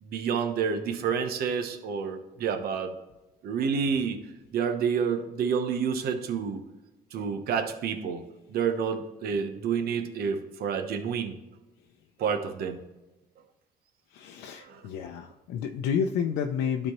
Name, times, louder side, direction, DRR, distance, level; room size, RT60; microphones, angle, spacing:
voice 1, 0.0-2.9 3.4-4.2 4.5-6.6 7.1-11.4 12.2-12.8 14.5-14.8, right 6 dB, 65° right, 6 dB, 0.9 m, -29 dB
voice 2, 14.1-16.9, left 7 dB, 85° left, 4 dB, 0.6 m, -30 dB
12.5 x 4.2 x 3.0 m, 1.1 s
cardioid pair, 110°, 17 cm